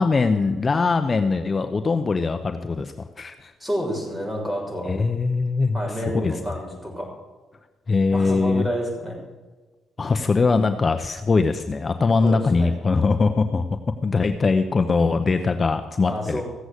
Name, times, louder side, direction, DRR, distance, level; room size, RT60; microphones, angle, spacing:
voice 1, 0.0-3.5 4.8-6.4 7.9-8.6 10.0-13.6 14.0-16.4, left 4 dB, 35° left, 8 dB, 0.8 m, -21 dB
voice 2, 3.6-4.9 5.7-7.1 8.1-9.2 12.2-12.7 16.0-16.4, equal, 5° right, -1 dB, 6.4 m, -29 dB
15.5 x 8.0 x 8.2 m, 1.3 s
cardioid pair, 90°, 0 cm